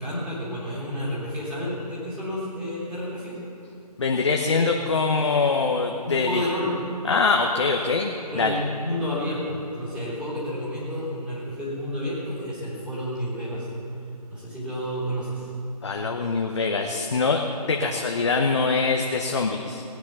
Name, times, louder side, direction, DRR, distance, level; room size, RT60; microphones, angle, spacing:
voice 1, 0.0-3.4 6.0-6.7 8.3-13.7 14.3-15.5, equal, 5° right, -11 dB, 3.3 m, -30 dB
voice 2, 4.0-6.4 7.1-8.5 15.8-17.4 17.7-19.8, left 4 dB, 45° left, 2 dB, 0.9 m, -23 dB
19.0 x 9.4 x 5.9 m, 2.6 s
figure-of-eight pair, 155°, 21 cm